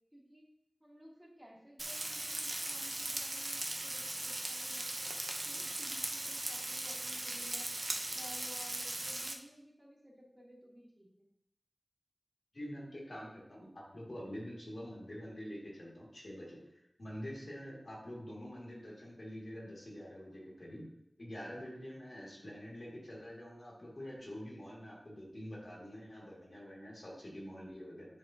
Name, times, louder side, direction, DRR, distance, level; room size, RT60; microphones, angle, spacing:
voice 1, 0.1-0.4 0.8-7.7 8.1-11.3, equal, 10° right, -4 dB, 1.7 m, -56 dB
Frying (food), 1.8-9.3, right 1 dB, 50° right, 0.7 m, -39 dB
voice 2, 12.5-16.6 17.0-20.9 21.2-28.1, equal, 60° left, -5 dB, 2.1 m, -46 dB
9.7 x 3.6 x 2.8 m, 0.77 s
wide cardioid pair, 65°, 0 cm